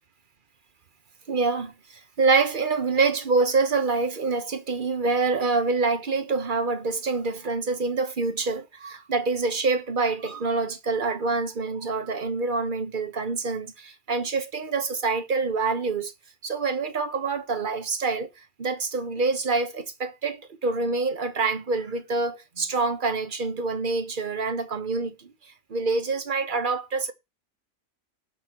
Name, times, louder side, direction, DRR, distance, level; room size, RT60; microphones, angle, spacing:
voice 1, 1.3-16.1 16.4-27.1, right 4 dB, 45° right, 1.3 m, -26 dB
19.0 x 6.6 x 3.1 m
omnidirectional pair, 1.3 m